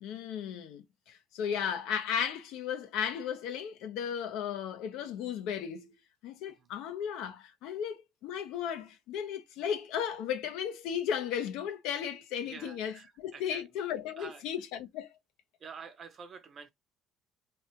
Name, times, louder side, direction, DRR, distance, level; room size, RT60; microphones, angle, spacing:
voice 1, 0.0-5.9 6.2-15.1, left 8 dB, 85° left, 0.8 m, -35 dB
voice 2, 12.4-13.8 14.2-14.4 15.6-16.7, right 6 dB, 35° right, 0.7 m, -48 dB
3.3 x 2.2 x 4.3 m
cardioid pair, 155°, 0 cm